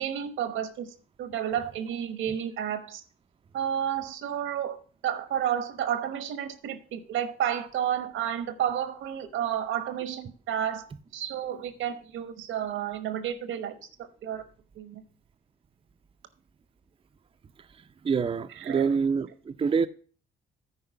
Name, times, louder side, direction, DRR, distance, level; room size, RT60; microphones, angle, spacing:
voice 1, 0.0-3.0 3.5-10.8 11.1-14.4 14.8-15.0 18.5-19.0, right 9 dB, 80° right, 1.1 m, -31 dB
voice 2, 18.0-19.9, right 5 dB, 25° right, 0.5 m, -26 dB
9.5 x 4.7 x 5.7 m
cardioid pair, 90°, 20 cm